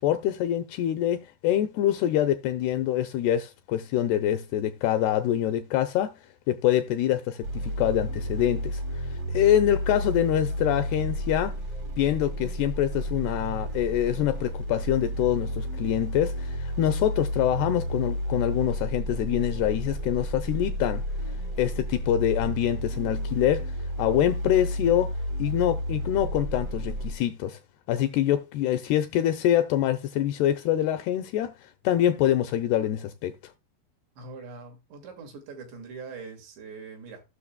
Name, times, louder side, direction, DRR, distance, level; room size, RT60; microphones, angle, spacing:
voice 1, 0.0-6.1 6.5-11.6 12.0-21.0 21.6-25.1 25.4-27.6 27.9-31.5 31.8-33.3, left 11 dB, 80° left, 2.4 m, -25 dB
sound 1, 7.4-27.1, equal, 55° right, 1.7 m, -31 dB
voice 2, 34.2-37.2, right 4 dB, 75° right, 4.0 m, -42 dB
16.0 x 6.4 x 2.2 m
omnidirectional pair, 5.1 m